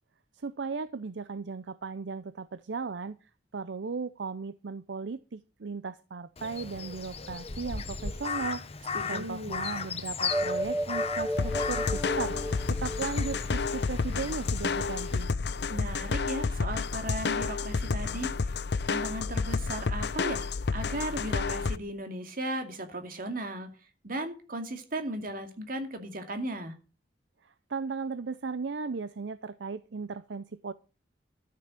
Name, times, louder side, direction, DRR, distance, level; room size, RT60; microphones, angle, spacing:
voice 1, 0.3-15.3 27.4-30.7, right 4 dB, 75° right, 0.6 m, -37 dB
Crow, 6.4-15.2, left 5 dB, 35° left, 1.1 m, -37 dB
voice 2, 8.9-9.6 15.7-18.3 18.9-23.7 24.0-26.7, right 1 dB, 50° right, 2.4 m, -36 dB
sound 1, 10.3-14.2, equal, 10° right, 0.7 m, -33 dB
sound 2, 11.4-21.8, left 4 dB, 65° left, 0.6 m, -30 dB
13.0 x 6.8 x 7.5 m
head